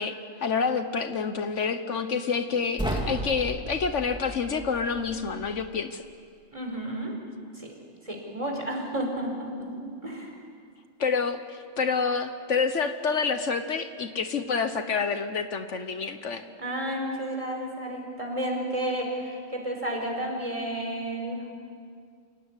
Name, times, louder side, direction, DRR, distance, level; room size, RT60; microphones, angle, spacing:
voice 1, 0.0-6.0 11.0-16.4, left 5 dB, 70° left, 9 dB, 1.4 m, -28 dB
sound 1, 2.8-5.8, right 1 dB, 5° right, 2.9 m, -35 dB
voice 2, 6.5-7.1 7.6-7.7 8.0-10.3 16.6-21.5, right 1 dB, 25° right, 1 dB, 4.8 m, -32 dB
27.5 x 17.5 x 9.8 m, 2.2 s
omnidirectional pair, 1.3 m